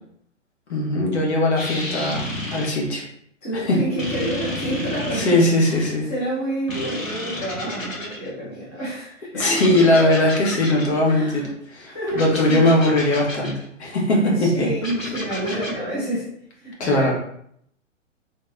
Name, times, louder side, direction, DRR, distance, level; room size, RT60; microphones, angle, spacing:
voice 1, 0.7-2.2 2.5-3.0 3.5-3.8 5.1-6.1 9.3-11.4 11.7-13.5 13.8-14.7 16.8-17.1, left 1 dB, 55° left, -1 dB, 1.1 m, -19 dB
sound 1, 1.6-2.9 4.0-5.5 6.7-8.3 9.4-11.0 12.1-13.6 14.8-15.8, left 1 dB, 85° left, 1.0 m, -31 dB
voice 2, 3.4-9.6 10.7-11.5 11.8-12.7 14.2-17.1, right 1 dB, 10° left, -9 dB, 0.3 m, -29 dB
3.2 x 2.8 x 2.2 m, 0.69 s
figure-of-eight pair, 115°, 39 cm